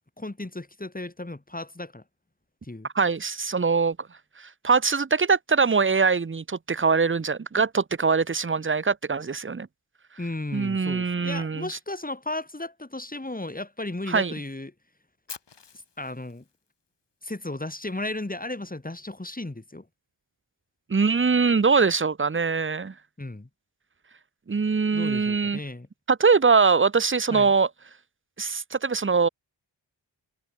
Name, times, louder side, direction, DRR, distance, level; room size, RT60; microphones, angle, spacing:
voice 1, 0.2-2.0 2.6-2.9 10.2-14.7 16.0-16.4 17.2-19.9 23.2-23.5 24.9-25.9 27.3-27.5, left 2 dB, 20° left, 2.1 m, -35 dB
voice 2, 2.9-4.0 4.4-9.7 10.5-11.7 14.1-14.3 20.9-22.9 24.5-25.6 26.1-27.7 28.4-29.3, right 5 dB, 25° right, 0.7 m, -22 dB
Fire, 15.3-17.3, left 6 dB, 65° left, 1.6 m, -46 dB
wide cardioid pair, 60°, 45 cm